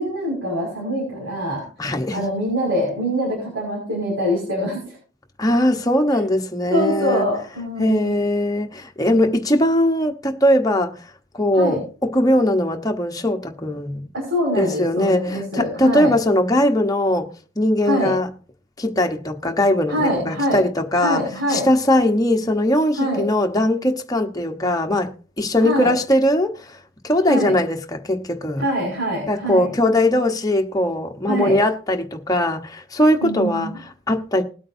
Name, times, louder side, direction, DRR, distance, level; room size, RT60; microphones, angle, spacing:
voice 1, 0.0-1.6 2.1-5.0 6.1-6.2 6.7-8.2 11.5-11.8 14.1-16.2 17.8-18.1 19.9-20.6 21.0-21.7 23.0-23.2 25.6-25.9 27.3-27.6 28.6-29.7 31.3-31.6 33.2-33.8, equal, 80° right, 5.7 m, -24 dB
voice 2, 1.8-2.2 5.4-7.3 7.8-11.0 11.3-14.1 14.5-17.3 17.6-18.3 18.8-21.2 21.5-26.8 27.0-28.6 29.3-34.4, left 1 dB, 20° left, 1.1 m, -20 dB
20.5 x 8.5 x 2.7 m
head